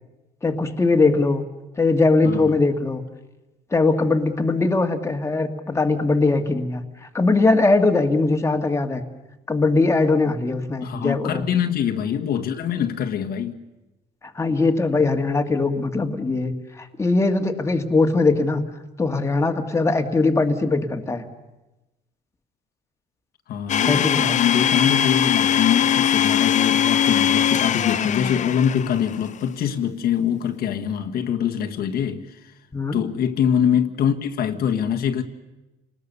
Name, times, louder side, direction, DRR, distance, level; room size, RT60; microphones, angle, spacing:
voice 1, 0.4-1.4 1.8-3.0 3.7-9.0 9.5-11.4 14.2-18.6 19.0-21.2 23.8-24.4 32.7-33.0, left 3 dB, 15° left, 1.9 m, -21 dB
voice 2, 10.8-13.6 23.5-32.5 32.9-35.2, left 8 dB, 65° left, 1.6 m, -24 dB
Domestic sounds home sounds, 23.7-29.2, left 9 dB, 45° left, 0.8 m, -21 dB
30.0 x 19.5 x 6.8 m
cardioid pair, 110°, 17 cm